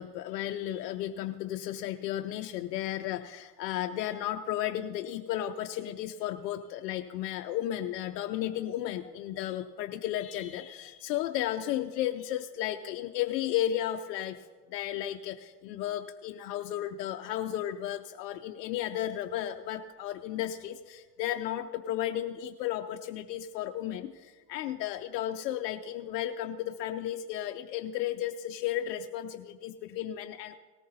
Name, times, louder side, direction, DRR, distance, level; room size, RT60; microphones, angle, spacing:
voice 1, 0.0-30.6, left 12 dB, 85° left, 6 dB, 0.6 m, -34 dB
18.0 x 14.0 x 2.8 m, 1.5 s
hypercardioid pair, 85°, 49 cm